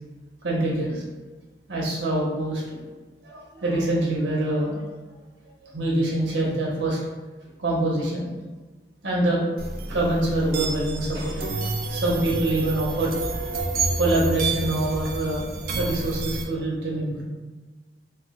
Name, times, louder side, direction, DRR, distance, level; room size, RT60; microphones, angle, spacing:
voice 1, 0.4-1.0 1.7-2.8 3.2-4.8 5.7-7.0 7.6-8.3 9.0-9.4 9.9-15.5 15.7-17.2, right 1 dB, 80° right, -4 dB, 0.7 m, -25 dB
sound 1, 9.6-16.4, right 3 dB, 50° right, 0.3 m, -29 dB
2.2 x 2.1 x 3.6 m, 1.3 s
head